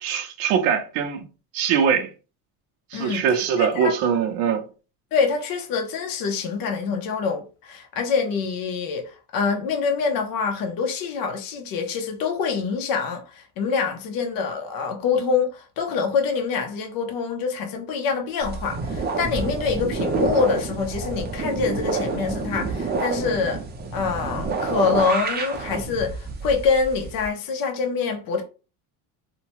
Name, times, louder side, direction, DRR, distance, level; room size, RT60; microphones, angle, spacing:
voice 1, 0.0-1.3 1.5-2.1 2.9-4.6, right 7 dB, 85° right, 0.7 m, -22 dB
voice 2, 2.9-3.2 3.6-4.0 5.1-23.6 23.9-28.4, left 5 dB, 50° left, 0.8 m, -25 dB
sound 1, 18.4-27.3, right 4 dB, 25° right, 0.5 m, -28 dB
2.9 x 2.2 x 2.8 m
supercardioid pair, 110°, 43 cm